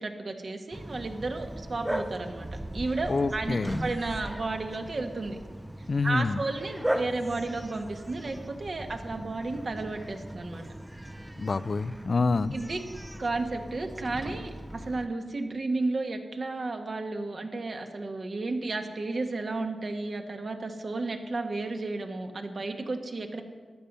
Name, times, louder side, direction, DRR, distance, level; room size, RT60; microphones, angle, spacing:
voice 1, 0.0-5.4 6.0-10.7 12.5-12.8 13.2-23.4, right 3 dB, 50° right, 4 dB, 1.6 m, -33 dB
Bark, 0.7-15.1, right 1 dB, 10° right, 0.7 m, -38 dB
voice 2, 3.1-3.8 5.9-6.4 11.4-12.6, left 4 dB, 50° left, 16 dB, 0.5 m, -27 dB
14.0 x 11.0 x 5.5 m, 1.5 s
cardioid pair, 60°, 0 cm